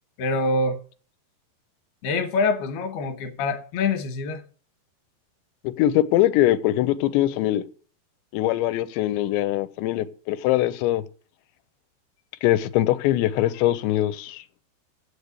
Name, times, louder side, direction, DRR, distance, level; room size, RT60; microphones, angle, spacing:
voice 1, 0.2-0.8 2.0-4.4, left 3 dB, 70° left, 2.9 m, -25 dB
voice 2, 5.6-7.6 8.3-11.0 12.4-14.4, left 14 dB, 90° left, 2.9 m, -22 dB
8.1 x 6.8 x 8.2 m
omnidirectional pair, 5.0 m